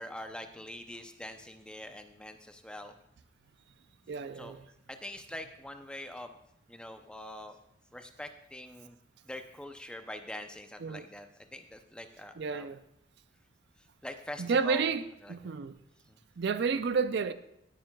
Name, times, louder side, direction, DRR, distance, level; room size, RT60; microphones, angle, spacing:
voice 1, 0.0-3.0 4.3-4.6 4.9-6.4 6.7-7.6 7.9-9.0 9.2-12.8 14.0-14.9 15.2-15.5 16.1-16.2, left 1 dB, 5° left, 0.5 m, -44 dB
voice 2, 4.1-4.6 10.8-11.0 12.4-12.8 14.4-15.0 15.3-15.7 16.4-17.3, right 5 dB, 55° right, 0.4 m, -30 dB
16.5 x 9.2 x 2.3 m
head